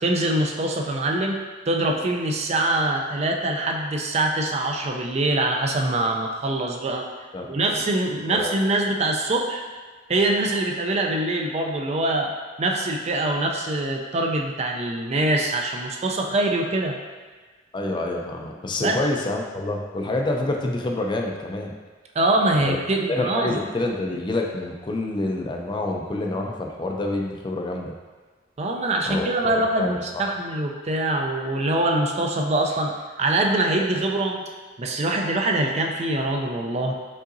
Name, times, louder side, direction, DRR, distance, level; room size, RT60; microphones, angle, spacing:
voice 1, 0.0-1.4 1.7-7.1 7.5-9.7 10.1-12.3 12.6-17.0 18.8-19.0 22.1-23.6 28.6-34.4 34.8-36.9, right 2 dB, 35° right, 2 dB, 0.4 m, -24 dB
voice 2, 17.7-21.7 22.5-22.8 23.1-27.9 29.1-30.2, left 2 dB, 25° left, 1 dB, 0.4 m, -27 dB
5.4 x 3.8 x 2.6 m, 1.4 s
head